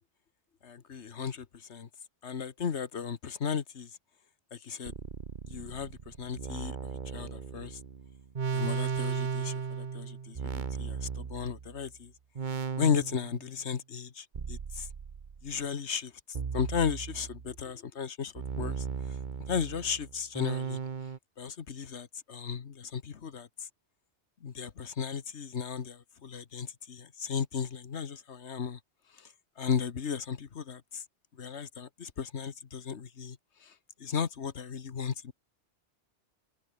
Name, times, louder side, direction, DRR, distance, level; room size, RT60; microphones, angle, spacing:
voice 1, 0.6-1.9 2.2-3.9 4.5-4.9 5.5-6.8 7.1-7.8 8.5-12.1 12.8-14.9 15.4-16.1 16.5-18.8 19.5-20.8 21.4-23.7 24.4-28.8 29.2-29.3 29.6-31.0 31.4-33.4 33.6-33.7 34.0-35.3, left 6 dB, 75° left, 1.6 m, -35 dB
sound 1, 4.9-11.9 12.4-13.5 14.3-15.5 16.4-17.6 18.4-21.2, right 6 dB, 45° right, 1.1 m, -36 dB
open air
omnidirectional pair, 1.2 m